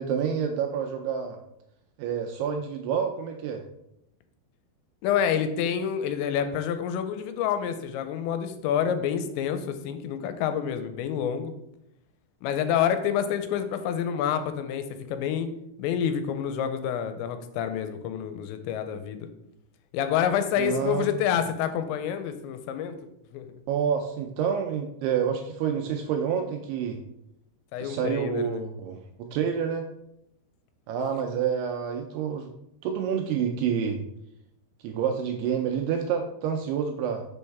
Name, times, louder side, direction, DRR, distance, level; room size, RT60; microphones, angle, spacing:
voice 1, 0.0-1.4 2.0-3.6 20.6-21.0 23.7-27.0 27.8-29.9 30.9-32.5 32.8-34.0 34.8-37.3, right 7 dB, 85° right, 4 dB, 2.4 m, -28 dB
voice 2, 5.0-11.5 12.4-15.5 15.8-19.3 19.9-23.0 23.3-23.5 27.7-28.6, left 8 dB, 90° left, 9 dB, 2.9 m, -28 dB
6.2 x 5.4 x 3.4 m, 0.81 s
omnidirectional pair, 5.1 m